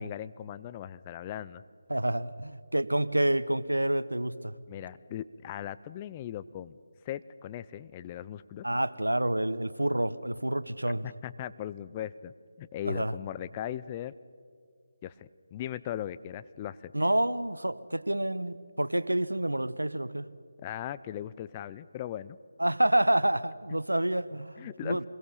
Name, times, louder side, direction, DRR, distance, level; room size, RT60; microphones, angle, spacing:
voice 1, 0.0-1.6 4.7-6.8 7.0-8.7 11.0-12.3 12.6-14.1 15.0-16.9 20.6-22.4 24.6-25.0, left 11 dB, 20° left, 14 dB, 0.6 m, -38 dB
voice 2, 1.9-4.5 8.6-11.0 12.9-13.1 16.9-20.3 22.6-25.0, right 1 dB, 90° right, 15 dB, 1.1 m, -28 dB
27.5 x 22.5 x 5.7 m, 2.3 s
figure-of-eight pair, 155°, 0 cm